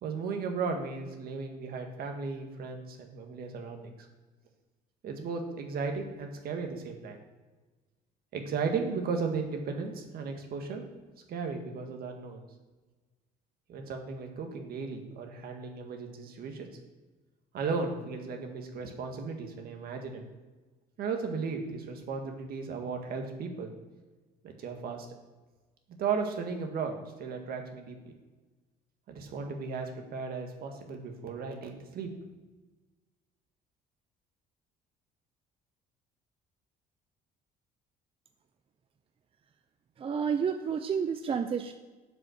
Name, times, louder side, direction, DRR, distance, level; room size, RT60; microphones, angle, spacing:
voice 1, 0.0-4.1 5.0-7.2 8.3-10.8 11.3-12.4 13.7-16.7 17.5-20.2 21.0-23.7 24.4-25.1 26.0-28.0 29.1-32.1, right 5 dB, 65° right, 4 dB, 1.8 m, -35 dB
voice 2, 40.0-41.7, right 6 dB, 35° right, 7 dB, 0.6 m, -30 dB
8.1 x 7.5 x 6.5 m, 1.2 s
cardioid pair, 110°, 17 cm